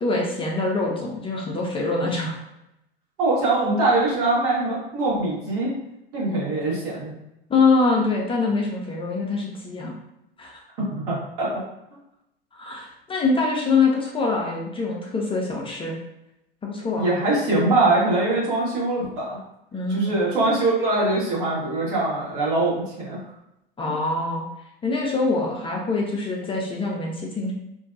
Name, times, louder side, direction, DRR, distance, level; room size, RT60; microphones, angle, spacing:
voice 1, 0.0-2.4 7.5-9.9 10.4-10.6 12.5-16.0 16.6-17.1 19.7-20.2 23.8-24.4 24.8-27.5, left 3 dB, 20° left, -2 dB, 0.5 m, -24 dB
voice 2, 3.2-5.7 6.1-7.2 11.0-11.6 17.0-19.4 19.9-23.2 23.9-24.0, right 2 dB, 65° right, -6 dB, 1.4 m, -23 dB
2.6 x 2.2 x 2.5 m, 0.85 s
figure-of-eight pair, 80°, 29 cm